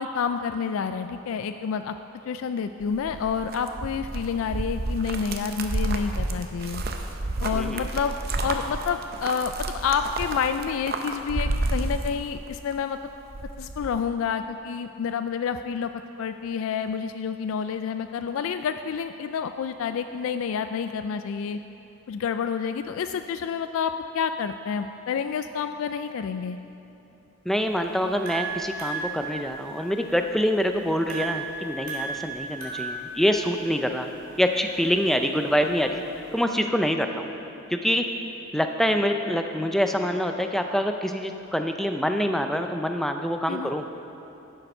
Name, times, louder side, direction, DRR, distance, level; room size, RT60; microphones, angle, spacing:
voice 1, 0.0-1.9 2.3-6.8 7.4-8.1 8.4-13.0 13.6-15.9 16.2-21.6 22.1-26.6 43.5-43.7, left 6 dB, 75° left, 9 dB, 0.3 m, -29 dB
sound 1, 2.8-12.7 13.0-14.0, right 2 dB, 45° right, 0.6 m, -30 dB
voice 2, 7.5-7.9 27.5-34.1 34.4-36.0 36.3-37.3 37.7-38.0 38.5-43.9, equal, ahead, 5 dB, 0.4 m, -25 dB
sound 2, 27.6-36.4, right 4 dB, 75° right, 2.0 m, -37 dB
11.5 x 6.8 x 5.4 m, 2.9 s
head